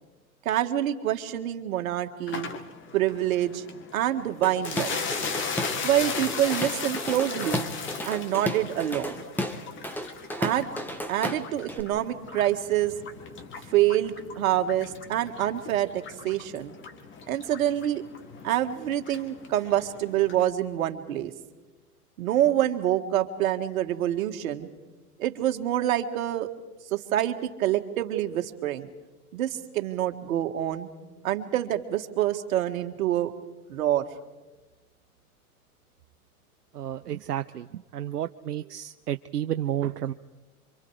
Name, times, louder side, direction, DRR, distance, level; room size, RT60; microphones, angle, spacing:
voice 1, 0.5-2.5 2.9-3.6 3.9-5.0 5.8-7.7 8.0-9.2 10.4-10.7 11.1-13.0 13.7-16.7 17.3-18.0 18.4-21.3 22.2-24.7 25.2-26.5 26.9-28.9 29.3-30.9 31.2-33.3 33.7-34.0, right 12 dB, 60° right, 6 dB, 2.0 m, -26 dB
sound 1, 2.3-20.5, left 5 dB, 25° left, 2.0 m, -38 dB
Drum kit / Drum, 4.4-5.8 6.1-11.8, left 1 dB, 5° left, 1.5 m, -33 dB
voice 2, 36.7-40.1, right 11 dB, 85° right, 9 dB, 0.8 m, -31 dB
28.0 x 25.0 x 4.9 m, 1.2 s
hypercardioid pair, 115°, 46 cm